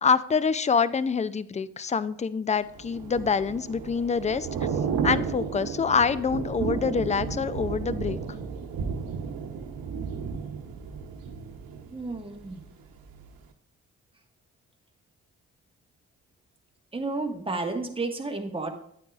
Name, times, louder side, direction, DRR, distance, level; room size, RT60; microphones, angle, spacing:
voice 1, 0.0-4.5 5.0-8.2, left 5 dB, 20° left, 16 dB, 0.4 m, -26 dB
Thunder / Rain, 2.7-12.6 13.0-13.2, right 6 dB, 75° right, 1.0 m, -33 dB
voice 2, 11.9-12.6 16.9-18.7, right 3 dB, 15° right, 3 dB, 1.5 m, -31 dB
9.2 x 9.2 x 2.4 m, 0.69 s
supercardioid pair, 55°, 36 cm